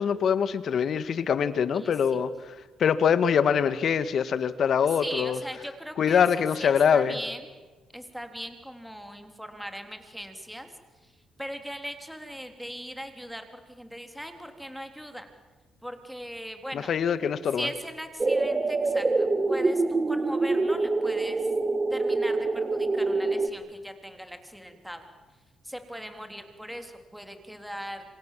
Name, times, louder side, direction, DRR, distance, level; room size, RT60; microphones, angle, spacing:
voice 1, 0.0-2.3 2.8-5.4 6.0-7.2 16.7-17.7, left 7 dB, 60° left, 13 dB, 1.7 m, -24 dB
voice 2, 5.0-6.2 6.6-7.4 7.9-10.7 11.0-11.1 11.4-15.3 15.8-16.9 17.5-21.4 21.9-25.0 25.6-28.0, equal, ahead, 6 dB, 3.4 m, -39 dB
sound 1, 18.2-23.5, right 3 dB, 25° right, 1.9 m, -25 dB
27.0 x 26.0 x 7.5 m, 1.3 s
cardioid pair, 90°, 0 cm